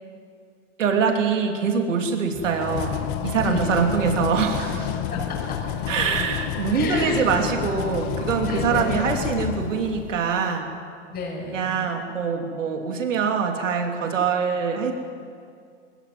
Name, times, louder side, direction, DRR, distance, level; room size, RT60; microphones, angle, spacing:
voice 1, 0.8-4.8 5.9-10.7 11.5-14.9, right 5 dB, 80° right, 3 dB, 3.0 m, -24 dB
sound 1, 2.3-10.3, left 9 dB, 40° left, 1.6 m, -30 dB
voice 2, 3.4-3.9 4.6-5.9 6.7-7.2 8.4-9.1 11.1-11.9, left 3 dB, 25° left, -1 dB, 6.1 m, -33 dB
20.5 x 18.0 x 9.5 m, 2.2 s
hypercardioid pair, 130°, 37 cm